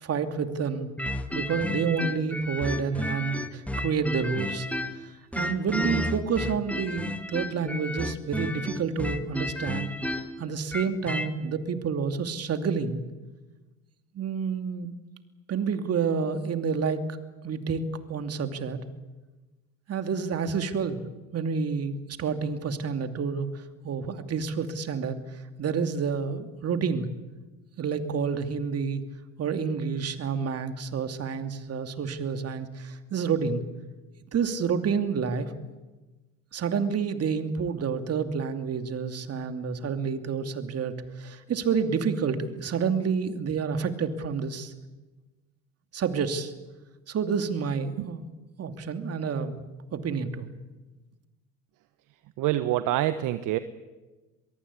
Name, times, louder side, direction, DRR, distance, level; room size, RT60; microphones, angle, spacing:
voice 1, 0.0-0.9 1.3-4.7 5.3-13.0 14.1-15.0 15.5-17.1 17.4-18.8 19.9-21.0 21.3-25.2 25.6-27.1 27.8-29.0 29.4-33.6 34.3-35.5 36.5-44.7 45.9-46.5 47.1-48.2 48.6-49.5 49.9-50.5, right 6 dB, 40° right, 8 dB, 2.7 m, -29 dB
sound 1, 1.0-5.0 5.3-11.3, left 1 dB, 5° left, 2.1 m, -32 dB
voice 2, 52.4-53.6, right 14 dB, 55° right, 12 dB, 1.3 m, -26 dB
23.0 x 23.0 x 8.5 m, 1.2 s
hypercardioid pair, 75°, 37 cm